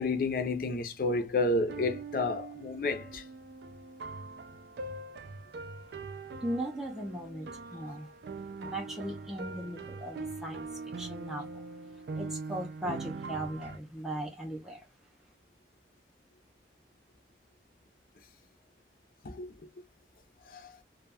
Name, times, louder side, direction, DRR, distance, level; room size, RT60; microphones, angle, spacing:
voice 1, 0.0-3.2 19.2-19.5 20.5-20.7, left 2 dB, 50° left, 0.5 m, -30 dB
sound 1, 1.6-13.8, right 3 dB, 70° right, 0.4 m, -42 dB
voice 2, 6.4-8.1 8.6-11.7 12.1-14.9, right 1 dB, 5° right, 0.4 m, -38 dB
2.2 x 2.1 x 3.3 m
head